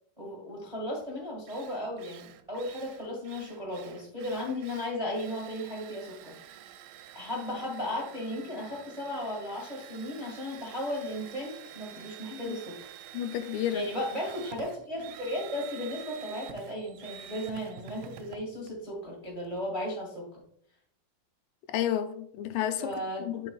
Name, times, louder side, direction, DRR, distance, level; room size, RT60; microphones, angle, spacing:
voice 1, 0.2-6.3 7.1-12.7 13.7-20.4 22.8-23.2, left 1 dB, 20° right, 1.0 m, -35 dB
Drill, 1.0-1.1 1.5-19.6, right 10 dB, 80° right, 2.2 m, -48 dB
voice 2, 13.1-13.9 21.7-23.5, left 11 dB, 85° left, 2.2 m, -31 dB
10.5 x 5.1 x 2.4 m
omnidirectional pair, 3.7 m